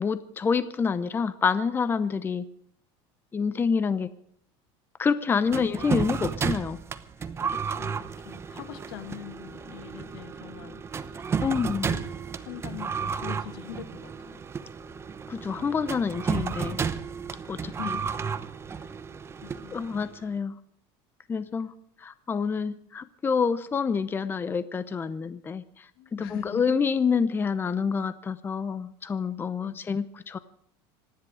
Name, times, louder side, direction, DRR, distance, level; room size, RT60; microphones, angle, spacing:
voice 1, 0.0-2.4 3.3-4.1 5.0-6.8 11.4-11.9 15.3-16.8 17.5-17.9 19.7-20.6 21.3-21.7 22.0-25.8 26.1-30.4, left 5 dB, 20° left, 14 dB, 0.7 m, -27 dB
voice 2, 5.4-5.8 7.2-10.8 11.2-11.4 11.7-14.4 17.5-18.1 18.7-18.9 19.4-19.9 20.2-20.3 26.0-26.6 29.6-29.9, left 14 dB, 80° left, 10 dB, 2.0 m, -43 dB
sound 1, 5.5-20.2, right 6 dB, 20° right, 0.9 m, -33 dB
26.5 x 10.5 x 4.9 m, 0.66 s
cardioid pair, 140°, 12 cm